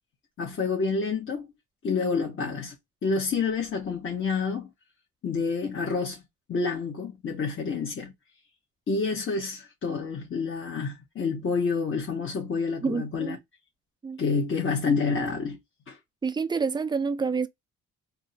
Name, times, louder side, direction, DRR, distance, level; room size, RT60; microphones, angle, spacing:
voice 1, 0.4-1.5 1.8-2.8 3.0-4.7 5.2-6.2 6.5-8.1 8.9-13.4 14.2-15.6 15.9-16.0, left 4 dB, 40° left, 1.1 m, -28 dB
voice 2, 12.8-13.4 14.0-14.2 16.2-17.5, right 5 dB, 15° right, 0.3 m, -28 dB
3.6 x 2.1 x 2.7 m
cardioid pair, 90°, 30 cm